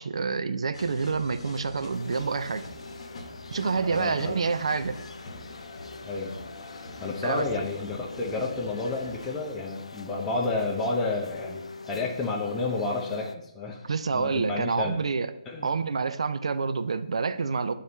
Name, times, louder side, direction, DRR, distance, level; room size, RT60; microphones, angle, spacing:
voice 1, 0.0-2.7 3.5-5.0 7.2-7.5 13.9-15.3 15.6-17.7, right 4 dB, 65° right, 12 dB, 0.4 m, -27 dB
sound 1, 0.7-9.4, left 2 dB, 60° left, 1.0 m, -44 dB
sound 2, 1.9-13.4, left 3 dB, 80° left, 0.4 m, -44 dB
voice 2, 3.8-4.4 6.0-6.4 7.0-13.9 14.1-14.9 15.5-15.7, left 3 dB, 15° left, -1 dB, 0.7 m, -31 dB
8.1 x 4.0 x 3.1 m, 0.79 s
figure-of-eight pair, 140°, 3 cm